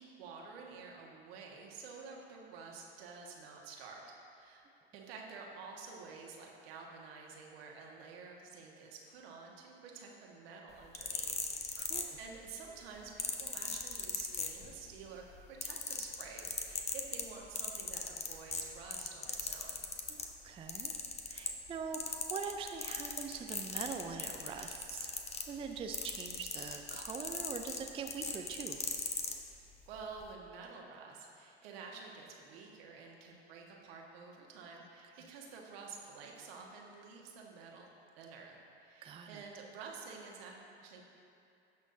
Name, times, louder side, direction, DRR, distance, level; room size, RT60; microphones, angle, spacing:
voice 1, 0.0-4.6 4.9-11.4 11.9-19.8 29.9-37.9 38.2-41.0, right 4 dB, 65° right, -1 dB, 1.6 m, -50 dB
sound 1, 10.8-12.5 13.2-14.9 15.3-20.3 20.7-21.7 21.9-29.4 30.1-30.3, left 4 dB, 20° left, 0.9 m, -38 dB
voice 2, 11.8-12.2 20.1-20.9 21.3-25.1 25.5-28.8 39.0-39.4, right 5 dB, 15° right, 4 dB, 0.4 m, -43 dB
16.5 x 6.2 x 2.7 m, 2.7 s
hypercardioid pair, 80°, 33 cm